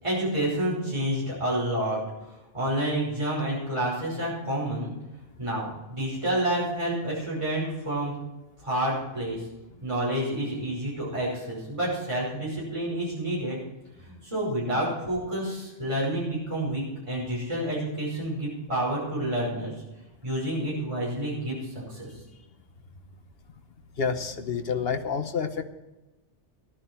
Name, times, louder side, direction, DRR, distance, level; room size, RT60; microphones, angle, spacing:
voice 1, 0.0-4.9 5.4-8.1 8.6-9.4 9.8-13.6 14.0-19.7 20.2-21.6 21.9-22.1, right 1 dB, 25° right, -6 dB, 5.5 m, -29 dB
voice 2, 23.9-25.6, left 6 dB, 55° left, 7 dB, 1.3 m, -28 dB
14.5 x 11.0 x 4.5 m, 1.0 s
omnidirectional pair, 1.2 m